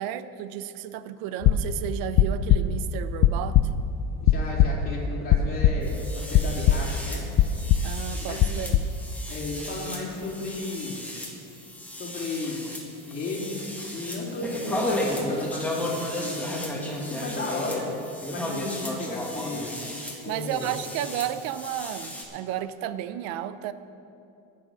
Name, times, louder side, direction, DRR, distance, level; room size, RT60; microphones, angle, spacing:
voice 1, 0.0-3.6 7.8-8.8 20.3-23.7, right 11 dB, 65° right, 13 dB, 0.7 m, -32 dB
sound 1, 1.4-6.1 6.3-7.1 7.3-8.0 8.4-9.0, left 9 dB, 45° left, 0.5 m, -21 dB
voice 2, 4.2-7.5 8.2-8.4 9.3-11.0 11.9-12.6 13.0-16.5 17.1-17.9 18.3-19.8 20.2-20.7, left 2 dB, 25° left, -5 dB, 3.1 m, -34 dB
sound 2, 5.8-22.2, left 1 dB, 5° left, 1.7 m, -34 dB
19.0 x 6.7 x 5.5 m, 2.7 s
cardioid pair, 135°, 37 cm